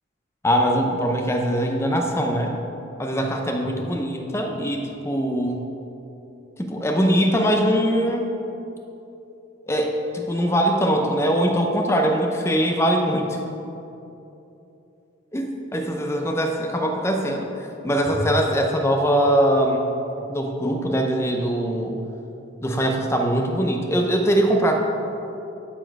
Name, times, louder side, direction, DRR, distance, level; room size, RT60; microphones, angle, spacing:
voice 1, 0.4-2.6 3.0-5.6 6.6-8.3 9.7-13.4 15.3-19.9 20.3-22.0 22.6-24.8, equal, 15° left, 3 dB, 0.5 m, -22 dB
12.0 x 4.3 x 4.6 m, 2.9 s
head